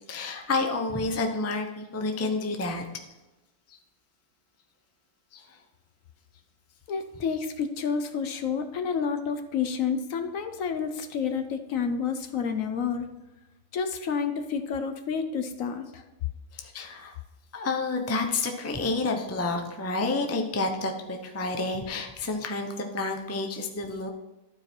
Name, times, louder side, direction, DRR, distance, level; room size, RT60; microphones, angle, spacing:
voice 1, 0.0-2.8 3.7-3.8 5.3-5.6 16.5-17.1 17.5-24.1, left 3 dB, 15° left, 4 dB, 0.5 m, -29 dB
voice 2, 6.9-13.1 13.7-16.0, left 6 dB, 65° left, 8 dB, 1.0 m, -29 dB
12.0 x 4.8 x 4.4 m, 1.1 s
omnidirectional pair, 1.6 m